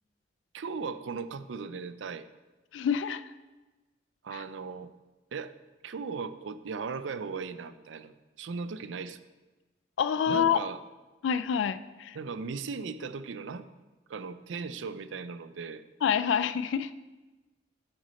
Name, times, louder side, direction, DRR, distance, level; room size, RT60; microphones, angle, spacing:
voice 1, 0.5-2.3 4.2-4.9 5.3-5.5 5.8-9.2 10.3-10.8 12.1-13.7 14.1-15.8, right 5 dB, 90° right, 13 dB, 0.5 m, -37 dB
voice 2, 2.7-3.2 4.3-4.4 10.0-10.6 11.2-12.2 16.0-16.9, left 7 dB, 90° left, 14 dB, 0.3 m, -27 dB
9.1 x 6.3 x 4.2 m, 1.2 s
head